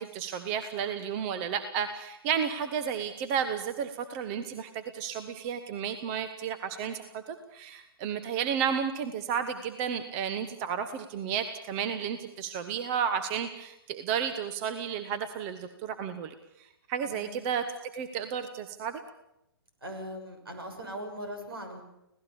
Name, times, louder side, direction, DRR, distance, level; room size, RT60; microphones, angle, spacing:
voice 1, 0.0-17.6 17.9-19.0, right 7 dB, 30° right, 10 dB, 1.3 m, -32 dB
voice 2, 17.0-17.5 19.8-21.8, equal, 75° right, 5 dB, 6.3 m, -40 dB
26.0 x 17.5 x 7.0 m, 0.85 s
figure-of-eight pair, 125°, 12 cm